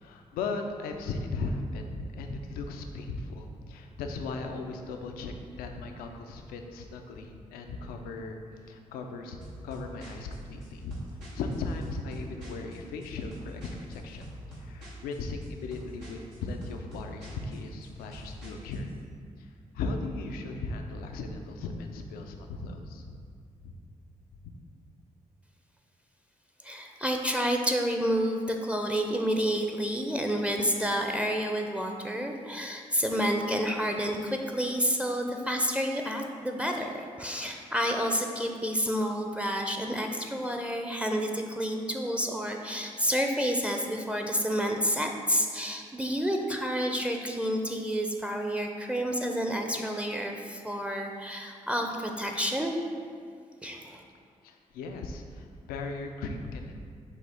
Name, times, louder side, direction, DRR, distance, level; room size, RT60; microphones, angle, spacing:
voice 1, 0.0-8.4 8.7-9.4 9.6-18.9 19.4-23.2 23.6-23.7 54.4-56.7, left 3 dB, 85° left, 4 dB, 0.4 m, -37 dB
sound 1, 9.4-18.9, right 1 dB, 85° right, 1.1 m, -46 dB
voice 2, 26.6-52.7 53.6-54.0, equal, 10° right, 2 dB, 0.5 m, -29 dB
6.2 x 2.4 x 3.5 m, 2.2 s
hypercardioid pair, 40°, 15 cm